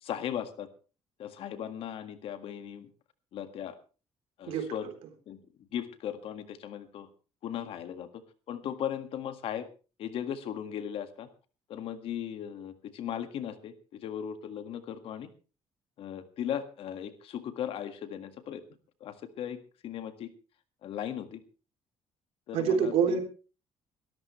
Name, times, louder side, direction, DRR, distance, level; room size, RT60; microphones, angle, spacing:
voice 1, 0.0-0.7 1.2-2.9 3.3-3.7 4.4-4.9 5.3-5.4 5.7-7.1 7.4-8.1 8.5-9.7 10.0-11.3 11.7-15.3 16.0-18.6 19.0-20.3 20.8-21.4 22.5-23.2, left 9 dB, 65° left, 10 dB, 1.8 m, -37 dB
voice 2, 4.5-4.9 22.5-23.2, right 6 dB, 80° right, 4 dB, 3.7 m, -27 dB
22.0 x 13.5 x 3.2 m, 0.35 s
cardioid pair, 130°, 10 cm